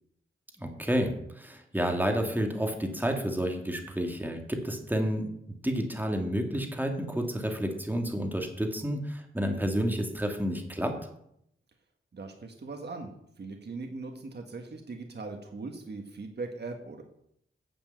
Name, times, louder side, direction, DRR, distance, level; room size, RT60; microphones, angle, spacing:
voice 1, 0.6-5.3 5.6-11.0, equal, 10° right, 3 dB, 2.3 m, -30 dB
voice 2, 12.1-17.0, right 3 dB, 55° right, 4 dB, 1.7 m, -40 dB
10.0 x 7.2 x 7.9 m, 0.74 s
wide cardioid pair, 80°, 21 cm